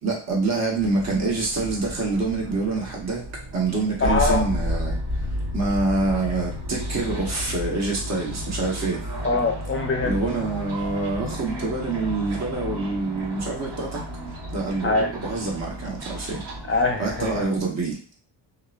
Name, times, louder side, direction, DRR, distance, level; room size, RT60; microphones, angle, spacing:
voice 1, 0.0-5.0 5.5-9.1 10.0-14.0 14.5-16.5 17.0-18.0, right 3 dB, 35° right, -2 dB, 1.1 m, -26 dB
sound 1, 0.8-17.5, left 1 dB, 65° right, 1.5 m, -32 dB
voice 2, 4.0-4.4 9.2-10.2 14.8-15.1 16.7-17.3, left 3 dB, 25° left, 3 dB, 0.7 m, -22 dB
2.9 x 2.1 x 2.4 m, 0.39 s
cardioid pair, 80°, 46 cm